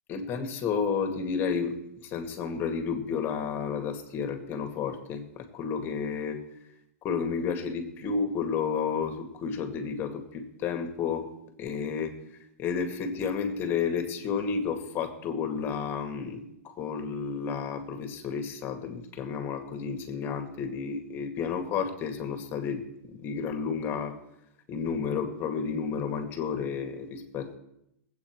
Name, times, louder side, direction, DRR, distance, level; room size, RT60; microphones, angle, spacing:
voice 1, 0.1-1.8 2.0-6.4 7.0-11.3 11.6-12.2 12.6-24.2 24.7-27.6, left 6 dB, 30° left, 6 dB, 2.0 m, -31 dB
19.5 x 8.5 x 4.7 m, 0.81 s
supercardioid pair, 140°, 8 cm